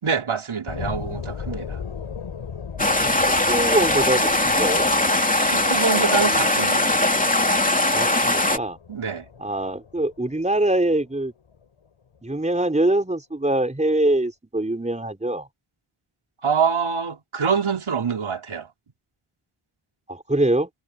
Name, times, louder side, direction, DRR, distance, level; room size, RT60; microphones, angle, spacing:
voice 1, 0.0-1.8 5.4-7.0 8.9-9.3 16.4-18.7, right 6 dB, 75° right, 4.4 m, -25 dB
sound 1, 0.7-11.7 12.2-12.3, left 6 dB, 90° left, 5.6 m, -38 dB
sound 2, 2.8-8.6, left 1 dB, 15° left, 2.7 m, -20 dB
voice 2, 3.5-4.9 7.9-8.8 9.4-11.3 12.2-15.5 20.1-20.7, right 1 dB, 15° right, 4.1 m, -23 dB
wide cardioid pair, 75°, 49 cm